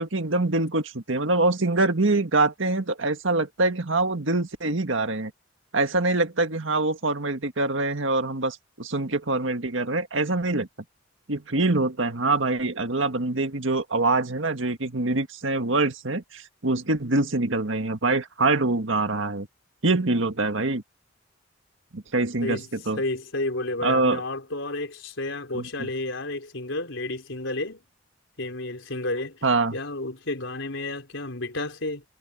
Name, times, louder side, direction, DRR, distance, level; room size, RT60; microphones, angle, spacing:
voice 1, 0.0-5.3 5.7-10.7 11.3-19.5 19.8-20.8 21.9-23.0 23.8-24.2 25.5-25.9 29.4-29.8, right 2 dB, 80° right, 1.8 m, -24 dB
voice 2, 23.0-27.8 28.4-29.4 29.7-32.0, left 2 dB, 80° left, 4.1 m, -31 dB
head